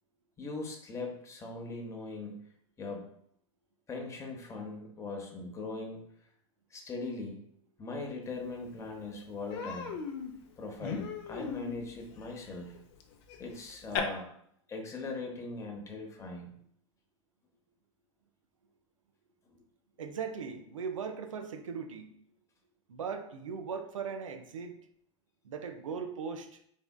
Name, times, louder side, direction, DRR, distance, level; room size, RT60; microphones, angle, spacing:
voice 1, 0.4-2.4 2.8-3.1 3.9-6.0 6.7-7.4 7.8-10.0 10.6-12.8 13.4-14.3 14.7-16.5, left 3 dB, 20° left, 1 dB, 0.8 m, -40 dB
Human voice, 8.5-8.6 8.9-9.1 9.5-14.0, left 7 dB, 55° left, 0.5 m, -39 dB
voice 2, 20.0-22.1 22.9-24.8 25.4-26.6, right 6 dB, 80° right, 6 dB, 0.5 m, -38 dB
3.5 x 3.3 x 2.2 m, 0.69 s
hypercardioid pair, 95°, 17 cm